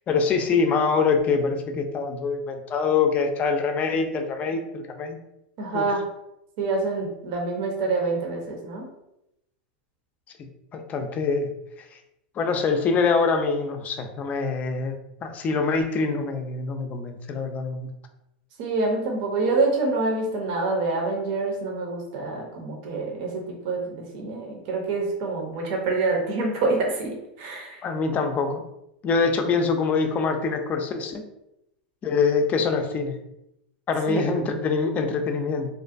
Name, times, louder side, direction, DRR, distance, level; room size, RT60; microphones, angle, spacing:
voice 1, 0.1-5.2 5.7-5.8 10.4-11.5 12.4-17.9 27.8-28.6 29.0-31.2 32.0-33.2 33.9-35.7, left 4 dB, 30° left, 6 dB, 0.4 m, -24 dB
voice 2, 5.6-6.0 6.6-8.9 18.6-27.8 34.1-34.2, right 3 dB, 55° right, 0 dB, 0.7 m, -26 dB
2.5 x 2.2 x 2.5 m, 0.85 s
hypercardioid pair, 115°, 5 cm